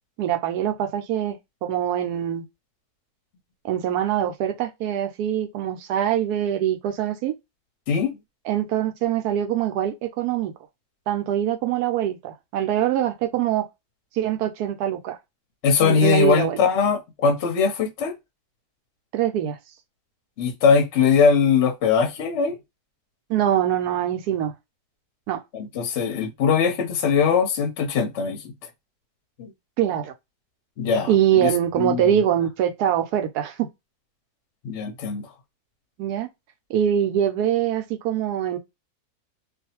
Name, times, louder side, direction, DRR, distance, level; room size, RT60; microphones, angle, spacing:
voice 1, 0.2-2.4 3.6-7.3 8.5-10.5 11.1-13.7 14.2-15.2 15.8-16.6 19.1-19.6 23.3-24.5 25.3-25.4 29.8-30.1 31.1-33.5 36.0-36.3 36.7-38.6, right 10 dB, 80° right, 1.1 m, -23 dB
voice 2, 7.9-8.2 15.6-18.1 20.4-22.6 25.5-28.5 29.4-29.5 30.8-31.5 31.8-32.2 34.6-35.2, left 6 dB, 60° left, 0.8 m, -21 dB
2.6 x 2.4 x 2.7 m
omnidirectional pair, 1.7 m